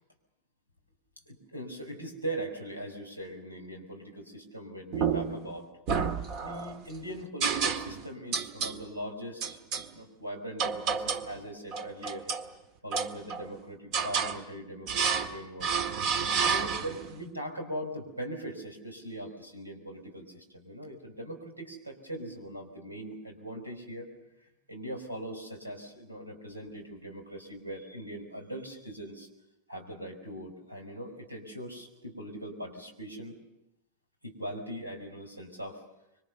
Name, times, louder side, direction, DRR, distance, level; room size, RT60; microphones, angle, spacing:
voice 1, 1.3-5.7 6.4-9.6 9.9-12.3 12.8-15.7 16.4-24.1 24.7-29.3 29.7-33.4 34.2-35.8, right 1 dB, 85° right, 4 dB, 5.1 m, -40 dB
sound 1, 4.9-5.5 5.9-6.7 7.4-8.0 8.3-8.8 9.4-9.9 10.6-11.3 11.7-12.5 12.9-13.5 13.9-14.4 14.9-15.3 15.6-17.1, right 6 dB, 40° right, 1.7 m, -30 dB
26.0 x 24.0 x 6.9 m, 0.91 s
figure-of-eight pair, 90°, 0 cm